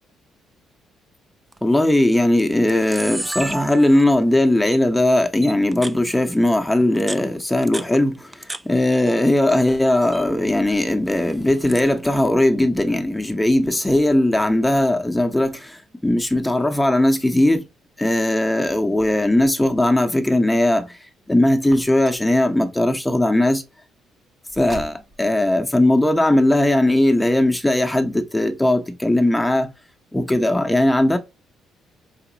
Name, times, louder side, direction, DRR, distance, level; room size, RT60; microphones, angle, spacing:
Camera, 1.5-1.8 2.4-2.5 2.7-4.2 4.7-4.8 5.4-6.0 6.8-8.6 8.9-9.6 9.9-10.3 11.1-11.9, right 2 dB, 15° right, 0.4 m, -33 dB
voice 1, 1.6-17.7 18.0-21.0 21.3-23.6 24.5-29.7 30.1-31.2, left 1 dB, 5° left, 0.9 m, -18 dB
Car, 21.6-22.4 24.5-25.4, right 2 dB, 35° right, 1.0 m, -39 dB
5.0 x 2.9 x 2.8 m
cardioid pair, 90°, 0 cm